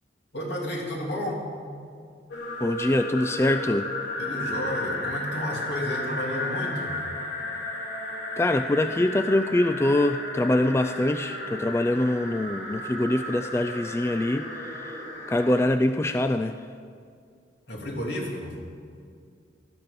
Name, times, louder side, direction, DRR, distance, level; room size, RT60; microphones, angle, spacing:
voice 1, 0.3-1.5 4.2-7.0 17.7-18.6, equal, 75° left, -1 dB, 3.0 m, -32 dB
sound 1, 2.3-15.6, left 2 dB, 90° left, 3.3 m, -34 dB
voice 2, 2.6-3.9 8.4-15.0 15.3-16.7, left 1 dB, 15° left, 9 dB, 0.3 m, -24 dB
18.5 x 12.5 x 5.2 m, 2.2 s
head